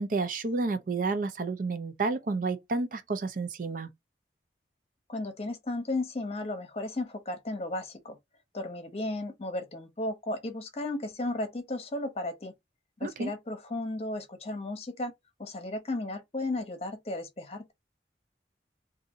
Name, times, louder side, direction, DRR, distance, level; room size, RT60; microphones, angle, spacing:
voice 1, 0.0-3.9 13.0-13.3, right 3 dB, 50° right, 0.4 m, -30 dB
voice 2, 5.1-8.2 8.5-12.5 13.0-15.1 15.4-17.7, left 2 dB, 35° left, 0.8 m, -34 dB
2.7 x 2.6 x 3.7 m
head